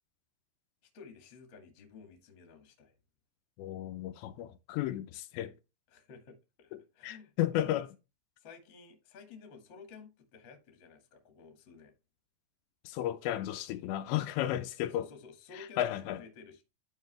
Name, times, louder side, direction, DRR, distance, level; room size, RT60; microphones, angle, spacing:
voice 1, 0.8-3.0 5.9-7.8 8.4-11.9 14.9-16.6, left 5 dB, 40° left, 1.7 m, -53 dB
voice 2, 3.6-5.5 7.0-7.9 12.8-15.1 15.6-16.2, left 12 dB, 85° left, 2.9 m, -33 dB
11.0 x 4.7 x 3.4 m
omnidirectional pair, 5.1 m